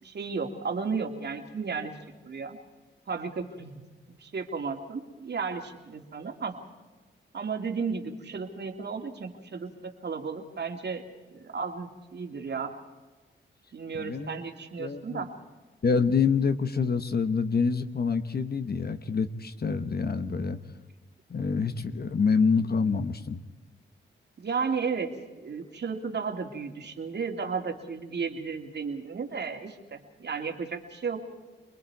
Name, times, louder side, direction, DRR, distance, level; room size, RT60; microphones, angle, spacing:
voice 1, 0.0-1.9 2.2-2.6 3.1-3.8 4.1-6.6 7.3-11.0 11.3-12.7 13.7-15.3 24.4-25.1 25.4-31.2, right 5 dB, 60° right, 4 dB, 2.5 m, -34 dB
voice 2, 13.9-14.4 14.8-15.3 15.8-20.6 21.3-23.4, left 5 dB, 50° left, 10 dB, 1.2 m, -26 dB
27.5 x 20.5 x 4.8 m, 1.2 s
cardioid pair, 60°, 20 cm